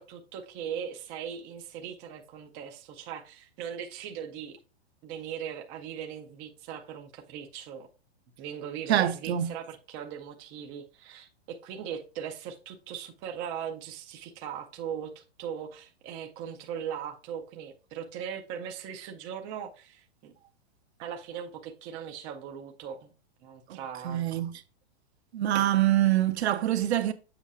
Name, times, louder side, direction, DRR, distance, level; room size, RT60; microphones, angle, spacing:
voice 1, 0.0-4.6 5.0-7.9 8.4-20.3 21.0-23.1 23.4-24.3 25.5-25.7, right 8 dB, 15° right, 0.3 m, -39 dB
voice 2, 8.9-9.5 23.7-23.8 24.0-24.5 25.3-27.1, right 12 dB, 80° right, 0.9 m, -25 dB
7.3 x 5.4 x 2.4 m
hypercardioid pair, 155°, 32 cm